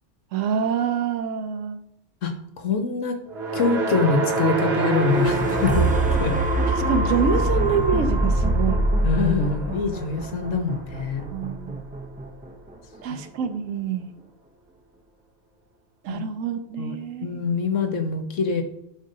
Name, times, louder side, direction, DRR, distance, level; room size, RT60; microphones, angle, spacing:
voice 1, 0.3-1.8 6.7-8.8 11.3-11.8 13.0-14.1 16.0-17.3, right 7 dB, 80° right, 9 dB, 1.0 m, -26 dB
voice 2, 2.6-3.2 3.5-5.9 6.2-6.4 9.0-11.2 13.1-13.2 16.1-16.2 16.8-17.0 17.2-18.6, left 4 dB, 75° left, 5 dB, 1.2 m, -24 dB
sound 1, 3.3-11.6, right 3 dB, 55° right, 1.2 m, -28 dB
sound 2, 4.9-12.9 13.5-13.6, right 1 dB, 15° right, 0.3 m, -25 dB
7.6 x 5.1 x 2.7 m, 0.77 s
omnidirectional pair, 1.3 m